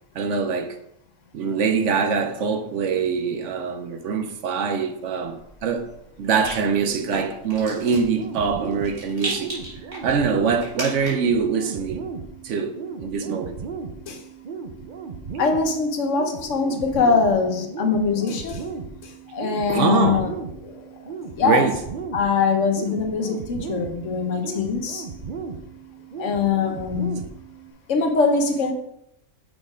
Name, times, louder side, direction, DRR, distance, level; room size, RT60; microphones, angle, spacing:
voice 1, 0.1-0.8 1.3-5.9 6.2-9.5 10.0-12.0 12.4-12.7 13.0-13.5 19.7-20.3 21.4-21.8, right 5 dB, 65° right, 1.0 m, -23 dB
Rattle, 5.3-11.4, right 1 dB, 35° right, 2.3 m, -37 dB
sound 1, 7.7-27.7, right 5 dB, 50° right, 0.6 m, -36 dB
voice 2, 15.4-18.7 19.0-20.3 20.6-20.9 21.4-21.7 22.1-25.1 26.2-27.2 27.9-28.7, left 5 dB, 65° left, 1.2 m, -22 dB
6.4 x 4.1 x 4.9 m
omnidirectional pair, 1.4 m